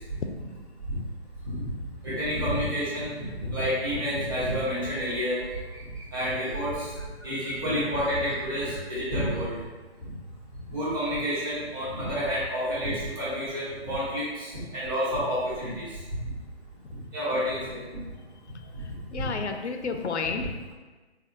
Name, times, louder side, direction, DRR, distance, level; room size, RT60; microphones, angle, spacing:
voice 1, 2.0-5.8 6.1-6.9 7.2-9.6 10.7-16.0 17.1-17.8 18.7-18.9, equal, 20° right, -9 dB, 0.9 m, -29 dB
voice 2, 18.8-20.7, left 4 dB, 85° left, 5 dB, 0.5 m, -32 dB
4.1 x 2.2 x 2.7 m, 1.3 s
figure-of-eight pair, 150°, 33 cm